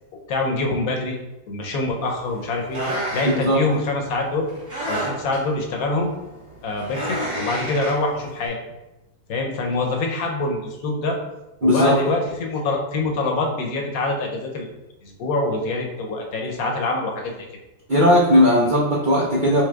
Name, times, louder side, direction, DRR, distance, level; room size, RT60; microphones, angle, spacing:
voice 1, 0.3-1.2 1.5-2.8 3.1-4.5 4.9-6.1 6.6-8.6 9.3-11.2 11.6-14.7 15.0-17.4, left 2 dB, 70° left, 1 dB, 1.1 m, -25 dB
sound 1, 2.0-8.5, right 1 dB, 55° right, 1.8 m, -30 dB
voice 2, 3.2-3.6 11.6-12.0 17.9-19.6, left 1 dB, 90° right, -4 dB, 0.4 m, -17 dB
4.9 x 3.5 x 2.3 m, 0.99 s
omnidirectional pair, 1.7 m